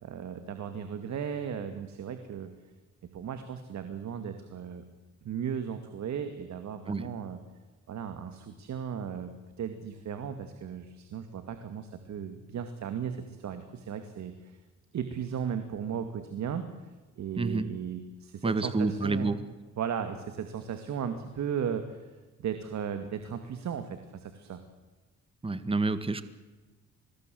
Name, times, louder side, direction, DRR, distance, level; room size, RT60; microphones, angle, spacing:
voice 1, 0.0-2.5 3.1-4.8 5.2-7.4 7.9-14.6 14.9-16.7 17.2-19.3 19.8-22.0 22.4-24.6, right 8 dB, 65° right, 8 dB, 2.3 m, -36 dB
voice 2, 18.4-19.4 25.4-26.2, right 3 dB, 20° right, 12 dB, 1.7 m, -28 dB
24.0 x 20.0 x 7.8 m, 1.2 s
cardioid pair, 90°, 30 cm